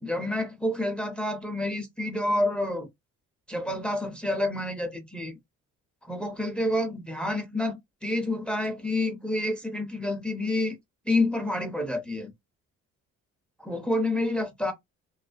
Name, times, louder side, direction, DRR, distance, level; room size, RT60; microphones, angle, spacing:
voice 1, 0.0-2.9 3.5-5.4 6.0-10.8 11.1-12.3 13.6-14.7, left 1 dB, 5° left, 0.6 m, -28 dB
2.4 x 2.1 x 2.4 m
cardioid pair, 90°, 30 cm